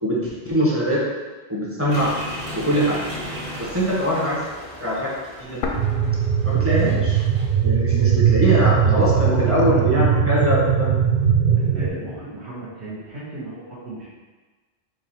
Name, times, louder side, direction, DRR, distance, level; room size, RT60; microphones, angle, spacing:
voice 1, 0.0-1.0 1.5-2.1 2.5-3.0 3.6-4.4 4.8-5.1 5.4-5.6 6.4-7.2 7.6-10.9, equal, 15° right, -7 dB, 1.1 m, -22 dB
sound 1, 1.9-7.6, equal, 30° right, 1.5 m, -36 dB
sound 2, 5.6-7.6 7.9-8.0 8.7-9.6, left 3 dB, 60° left, 0.7 m, -34 dB
sound 3, 5.7-11.9, right 8 dB, 55° right, 0.6 m, -19 dB
voice 2, 8.4-10.1 11.5-14.1, right 2 dB, 75° right, -10 dB, 1.3 m, -34 dB
4.6 x 2.6 x 4.2 m, 1.3 s
omnidirectional pair, 1.1 m